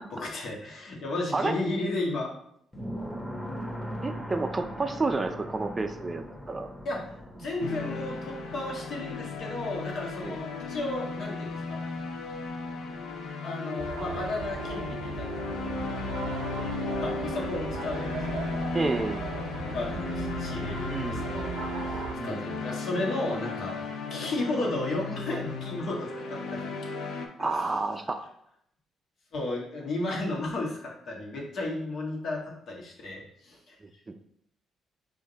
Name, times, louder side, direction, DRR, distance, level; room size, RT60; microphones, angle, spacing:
voice 1, 0.1-2.3 6.8-11.8 13.4-15.8 17.0-18.6 19.5-26.7 27.4-27.8 29.3-33.8, left 2 dB, 60° left, -2 dB, 1.5 m, -34 dB
sound 1, 2.7-13.3, equal, 10° left, 1.3 m, -41 dB
voice 2, 4.0-6.7 10.2-10.4 18.7-19.2 20.8-21.2 22.2-22.4 27.4-28.2 33.8-34.1, right 3 dB, 25° right, 7 dB, 0.4 m, -30 dB
sound 2, 7.6-27.3, left 3 dB, 80° left, 0.6 m, -35 dB
sound 3, 13.8-22.1, right 6 dB, 90° right, 0.4 m, -38 dB
5.1 x 2.6 x 3.9 m, 0.72 s
cardioid pair, 90°, 0 cm